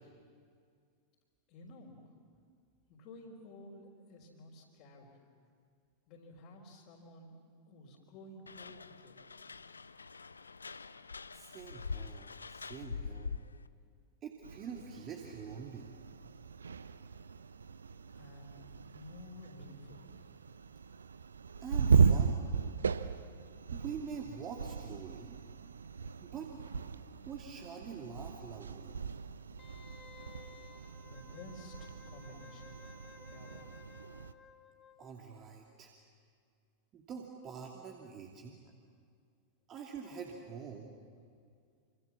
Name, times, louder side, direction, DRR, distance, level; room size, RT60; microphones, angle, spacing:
voice 1, 1.5-2.0 2.9-5.1 6.1-7.4 7.7-9.2 18.1-18.6 18.9-20.0 31.0-32.7 33.3-33.6, left 1 dB, 45° left, -3 dB, 4.3 m, -53 dB
sound 1, 8.5-13.7, left 5 dB, 75° left, 0.7 m, -44 dB
voice 2, 11.3-13.4 14.2-15.9 21.6-22.4 23.7-25.4 26.2-26.5 27.3-29.0 35.0-35.9 36.9-38.6 39.7-40.9, right 6 dB, 30° right, 0 dB, 2.7 m, -45 dB
sound 2, 14.4-34.3, right 6 dB, 70° right, 0.8 m, -36 dB
Wind instrument woodwind instrument, 29.6-35.1 35.5-35.6, left 7 dB, 20° left, 1.6 m, -57 dB
27.5 x 27.5 x 7.3 m, 2.2 s
figure-of-eight pair, 90°, 0 cm